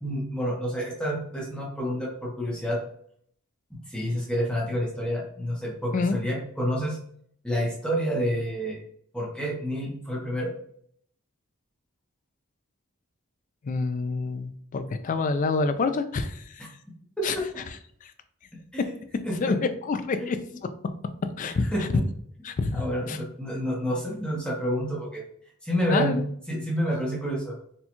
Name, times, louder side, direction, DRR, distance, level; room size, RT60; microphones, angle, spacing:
voice 1, 0.0-2.8 3.9-7.0 7.4-8.8 9.1-10.5 17.2-17.4 18.7-19.0 19.2-19.6 20.2-20.3 21.4-21.8 22.7-25.2 25.6-26.2 26.5-27.5, equal, 5° left, -4 dB, 0.7 m, -29 dB
voice 2, 13.6-16.7 17.2-17.4 18.0-18.1 19.4-20.4 21.4-21.9 22.4-23.2 25.9-26.2, left 4 dB, 40° left, 9 dB, 0.3 m, -27 dB
4.2 x 2.3 x 2.8 m, 0.63 s
head